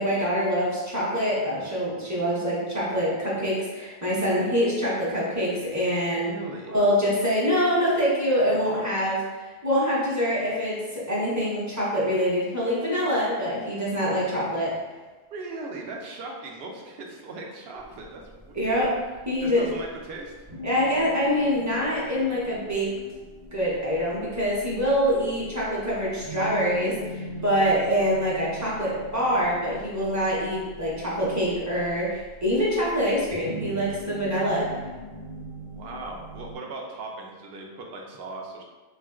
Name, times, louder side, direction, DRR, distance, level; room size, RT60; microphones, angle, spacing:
voice 1, 0.0-6.3 6.7-14.7 18.5-18.9 19.3-19.6 20.6-22.9 23.5-34.6, equal, 20° right, -7 dB, 0.6 m, -25 dB
voice 2, 6.1-6.7 15.3-18.8 19.4-20.5 27.4-28.1 35.7-38.6, right 3 dB, 70° right, 0 dB, 0.8 m, -39 dB
sound 1, 17.8-36.6, equal, 40° right, 0.8 m, -41 dB
3.6 x 2.4 x 2.3 m, 1.3 s
omnidirectional pair, 1.1 m